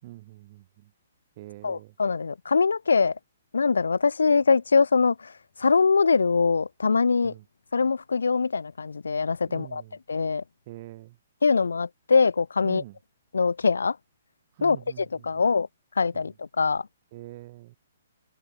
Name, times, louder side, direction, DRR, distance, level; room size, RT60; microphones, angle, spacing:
voice 1, 0.0-0.9 1.4-2.0 7.2-7.4 9.5-10.0 10.7-11.2 12.6-13.0 14.5-15.5 16.1-16.3 17.1-17.8, right 17 dB, 40° right, 5.9 m, -44 dB
voice 2, 1.6-3.1 3.5-5.3 5.6-7.3 7.7-9.8 10.1-10.4 11.4-12.8 13.3-14.0 14.6-15.7 16.0-16.9, left 5 dB, 75° left, 2.9 m, -23 dB
figure-of-eight pair, 130°, 0 cm